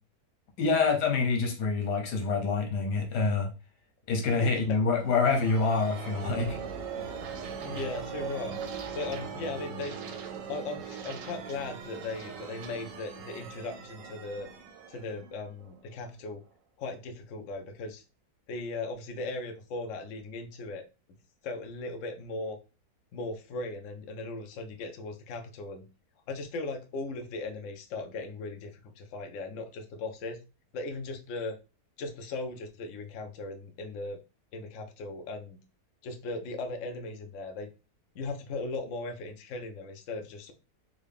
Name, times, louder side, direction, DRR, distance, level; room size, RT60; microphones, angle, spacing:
voice 1, 0.6-3.5 4.1-6.6, left 4 dB, 85° left, 2 dB, 1.5 m, -26 dB
voice 2, 4.4-4.8 7.6-8.5 8.9-10.0 10.5-14.5 14.9-16.4 16.8-18.0 18.5-20.8 21.4-22.6 23.1-25.8 26.3-30.4 30.7-31.6 32.0-34.2 34.5-35.6 36.0-37.7 38.1-40.5, left 3 dB, 65° left, 5 dB, 0.8 m, -38 dB
sound 1, 4.6-16.1, right 6 dB, 65° right, 0.9 m, -40 dB
3.8 x 2.2 x 3.4 m, 0.30 s
omnidirectional pair, 1.7 m